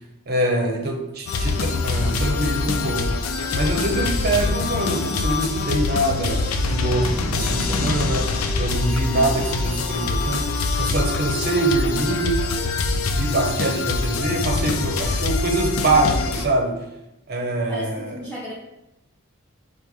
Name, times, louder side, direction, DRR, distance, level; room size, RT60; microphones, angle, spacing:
voice 1, 0.3-3.2 3.5-8.3 8.6-12.4 12.9-16.8 17.3-18.2, right 1 dB, 45° right, 2 dB, 0.7 m, -24 dB
sound 1, 1.3-16.5, left 3 dB, 90° left, 0.5 m, -24 dB
voice 2, 17.7-18.5, left 1 dB, 10° left, -5 dB, 0.5 m, -34 dB
5.2 x 2.1 x 4.7 m, 0.91 s
head